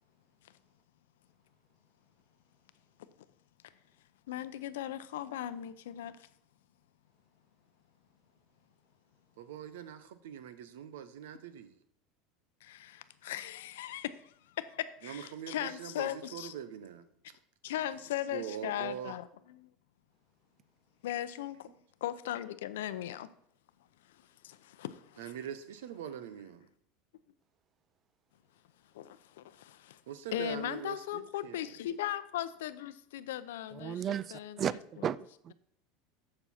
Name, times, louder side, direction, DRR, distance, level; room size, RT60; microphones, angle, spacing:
voice 1, 4.3-6.1 12.6-16.5 17.6-19.7 21.0-21.7 22.0-23.3 24.4-25.3 28.9-30.0 30.3-34.8, left 12 dB, 85° left, 0.6 m, -38 dB
voice 2, 9.4-11.8 15.0-17.0 18.3-19.1 21.7-21.8 25.2-26.7 30.1-31.8, right 9 dB, 85° right, 0.9 m, -43 dB
voice 3, 33.7-35.5, right 9 dB, 40° right, 0.4 m, -35 dB
7.6 x 7.0 x 4.3 m
supercardioid pair, 105°, 0 cm